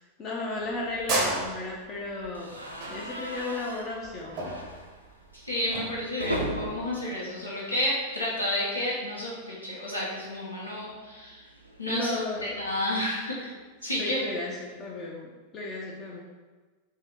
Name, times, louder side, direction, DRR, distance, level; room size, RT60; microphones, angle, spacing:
voice 1, 0.0-2.5 2.9-4.5 11.9-12.6 13.8-16.2, left 2 dB, 30° left, -3 dB, 0.5 m, -34 dB
sound 1, 0.6-6.0, right 2 dB, 40° right, 0.7 m, -33 dB
sound 2, 2.3-8.4 8.7-8.9 9.1-9.2 10.5-12.8, right 1 dB, 90° right, 0.4 m, -39 dB
voice 2, 5.4-11.4 11.8-12.1 12.5-13.5 13.8-14.2, left 1 dB, 85° left, -7 dB, 0.8 m, -31 dB
2.7 x 2.7 x 3.6 m, 1.4 s
figure-of-eight pair, 90°, 0 cm